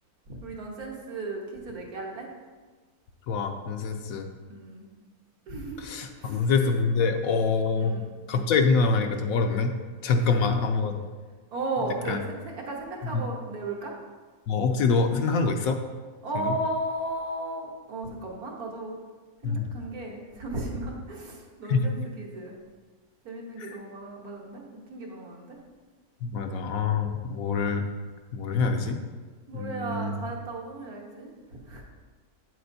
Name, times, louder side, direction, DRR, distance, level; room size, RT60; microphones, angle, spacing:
voice 1, 0.3-2.3 4.5-4.9 5.5-5.9 6.2-6.4 7.8-8.5 10.2-10.6 11.5-12.2 12.6-13.9 16.2-18.9 19.4-22.6 23.3-25.6 29.5-31.3 31.7-31.8, right 2 dB, 75° right, -1 dB, 1.7 m, -35 dB
voice 2, 3.3-4.3 5.8-7.9 8.3-9.7 10.0-11.0 12.1-12.2 13.0-13.2 14.5-15.8 16.3-16.5 19.4-19.7 21.7-21.9 23.6-23.8 26.2-27.8 28.3-29.0 29.5-30.2, left 4 dB, 70° left, 5 dB, 1.0 m, -25 dB
8.6 x 7.6 x 2.7 m, 1.4 s
omnidirectional pair, 1.6 m